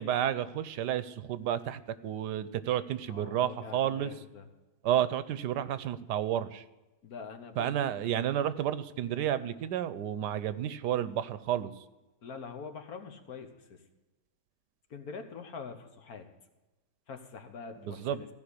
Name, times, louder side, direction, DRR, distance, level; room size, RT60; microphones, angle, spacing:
voice 1, 0.0-4.1 4.8-6.6 7.6-11.8 17.9-18.2, right 10 dB, 80° right, 15 dB, 1.3 m, -31 dB
voice 2, 3.1-4.5 7.0-7.9 12.2-13.8 14.9-16.3 17.1-18.3, left 5 dB, 65° left, 6 dB, 1.7 m, -44 dB
15.5 x 5.3 x 9.7 m, 1.1 s
omnidirectional pair, 1.8 m